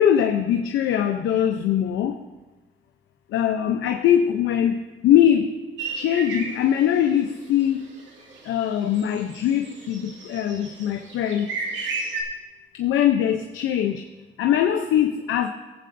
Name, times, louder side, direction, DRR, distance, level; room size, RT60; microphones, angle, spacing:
voice 1, 0.0-2.2 3.3-5.6 5.9-7.9 8.4-11.5 12.7-14.0 14.4-15.5, left 10 dB, 80° left, 5 dB, 0.6 m, -22 dB
sound 1, 5.8-12.2, right 4 dB, 70° right, 2.2 m, -35 dB
19.5 x 7.6 x 2.6 m, 1.2 s
cardioid pair, 90°, 20 cm